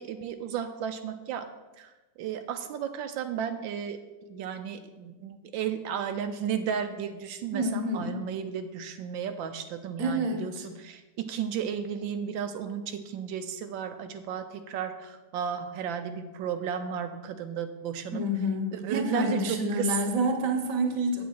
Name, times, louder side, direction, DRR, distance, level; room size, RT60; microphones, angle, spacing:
voice 1, 0.0-1.5 1.8-1.9 2.2-4.0 4.3-18.2 18.7-19.9, right 8 dB, 85° right, 7 dB, 1.4 m, -34 dB
voice 2, 7.5-8.2 10.0-10.7 18.1-21.2, equal, 50° right, 5 dB, 1.3 m, -28 dB
8.2 x 7.7 x 4.5 m, 1.1 s
omnidirectional pair, 2.0 m